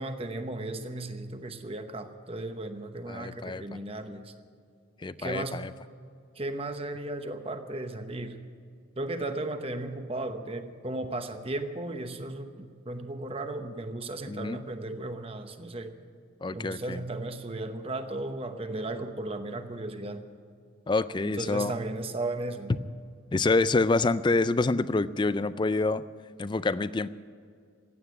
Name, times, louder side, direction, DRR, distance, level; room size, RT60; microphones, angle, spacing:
voice 1, 0.0-4.3 5.2-5.6 6.4-8.4 9.0-15.9 16.5-20.2 21.2-22.7, right 2 dB, 30° right, 8 dB, 0.9 m, -35 dB
voice 2, 3.1-3.6 5.0-5.7 14.3-14.6 16.4-17.0 20.9-21.8 23.3-26.0 26.4-27.1, left 3 dB, 20° left, 16 dB, 0.3 m, -27 dB
15.5 x 9.5 x 9.6 m, 2.2 s
head